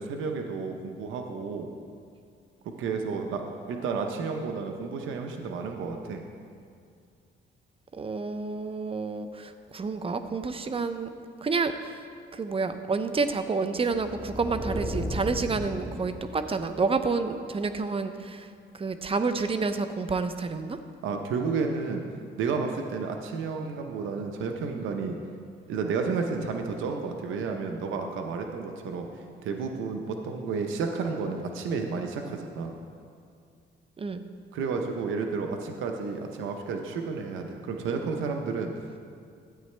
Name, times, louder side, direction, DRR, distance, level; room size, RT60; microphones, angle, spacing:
voice 1, 0.0-1.7 2.6-3.4 3.7-6.2 21.0-22.0 22.4-25.2 25.7-29.1 29.4-32.8 34.5-38.7, right 5 dB, 85° right, 4 dB, 0.8 m, -31 dB
voice 2, 7.9-11.1 11.4-12.1 12.3-20.8 34.0-34.2, right 4 dB, 30° right, 10 dB, 0.6 m, -29 dB
sound 1, 13.8-16.8, equal, ahead, 1.8 m, -34 dB
12.5 x 8.7 x 3.3 m, 2.3 s
cardioid pair, 90°, 20 cm